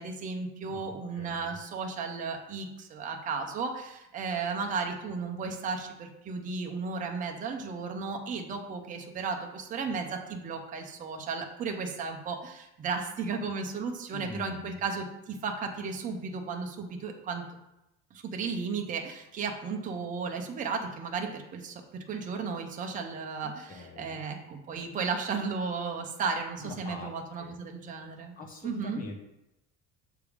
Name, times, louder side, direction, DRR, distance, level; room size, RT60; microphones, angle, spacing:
voice 1, 0.0-17.4 18.1-28.3 28.6-29.0, right 5 dB, 25° right, 3 dB, 0.7 m, -34 dB
voice 2, 0.6-1.5 14.1-14.8 23.4-24.2 26.6-27.1 27.4-27.5 28.4-29.1, left 3 dB, 30° left, 2 dB, 1.1 m, -44 dB
7.0 x 3.4 x 4.9 m, 0.89 s
cardioid pair, 165°, 30 cm